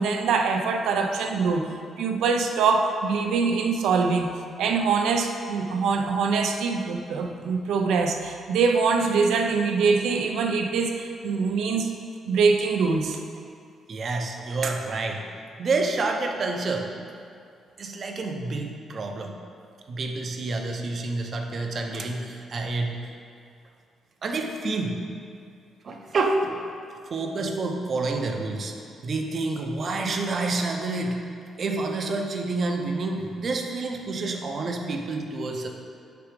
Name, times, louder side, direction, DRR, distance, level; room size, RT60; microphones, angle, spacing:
voice 1, 0.0-1.7 2.0-4.3 4.6-11.9 12.3-13.2, right 4 dB, 85° right, 4 dB, 0.6 m, -23 dB
voice 2, 13.9-15.2 15.6-16.9 17.8-19.4 19.9-23.0 24.2-25.0 25.8-26.5 27.1-28.7 29.0-31.2 31.6-35.7, right 3 dB, 35° right, 3 dB, 0.6 m, -28 dB
6.8 x 4.9 x 4.9 m, 2.4 s
cardioid pair, 170°, 0 cm